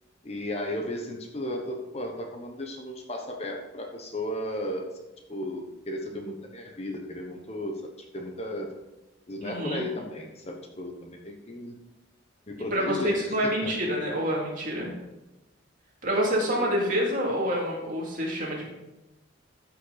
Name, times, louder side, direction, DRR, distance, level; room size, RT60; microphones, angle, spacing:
voice 1, 0.2-4.9 5.3-7.8 8.1-8.7 9.3-11.7 12.5-13.7 16.6-16.7, left 1 dB, 30° left, 2 dB, 1.0 m, -34 dB
voice 2, 9.4-9.9 12.7-14.9 16.0-18.7, equal, 40° right, -3 dB, 2.6 m, -27 dB
13.0 x 5.8 x 4.1 m, 1.0 s
head